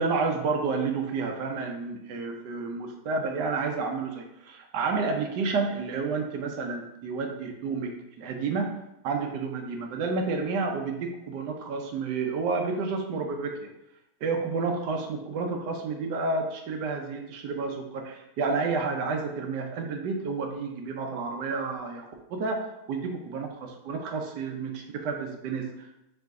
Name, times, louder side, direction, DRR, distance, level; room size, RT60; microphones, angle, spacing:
voice 1, 0.0-8.7 9.0-13.7 14.2-26.0, right 4 dB, 70° right, 3 dB, 1.1 m, -30 dB
4.8 x 3.0 x 3.6 m, 0.88 s
omnidirectional pair, 2.3 m